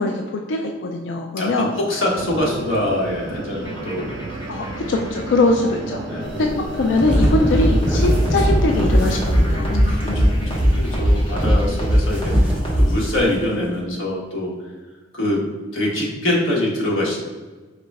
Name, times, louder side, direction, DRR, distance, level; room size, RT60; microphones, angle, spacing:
voice 1, 0.0-1.7 4.5-6.5 6.7-9.8 11.7-11.8, left 2 dB, 65° left, 2 dB, 0.4 m, -22 dB
voice 2, 1.4-4.3 4.5-4.7 6.0-6.3 9.8-14.5 15.1-15.4 15.7-17.2, left 1 dB, 80° left, -3 dB, 1.3 m, -24 dB
sound 1, 2.1-9.6, right 2 dB, 50° right, 0.4 m, -33 dB
sound 2, 3.6-13.3, equal, 25° left, 1.2 m, -20 dB
sound 3, 6.2-13.4, equal, 5° right, 0.9 m, -32 dB
4.9 x 3.1 x 3.5 m, 1.3 s
head